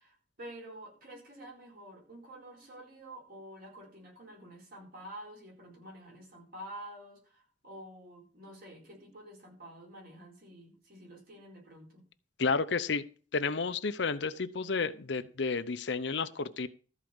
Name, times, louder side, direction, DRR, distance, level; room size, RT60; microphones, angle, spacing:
voice 1, 0.0-12.0, right 1 dB, 55° right, 1 dB, 4.9 m, -49 dB
voice 2, 12.4-13.1 13.3-16.7, left 4 dB, 70° left, 13 dB, 0.8 m, -31 dB
13.5 x 4.8 x 7.9 m, 0.39 s
head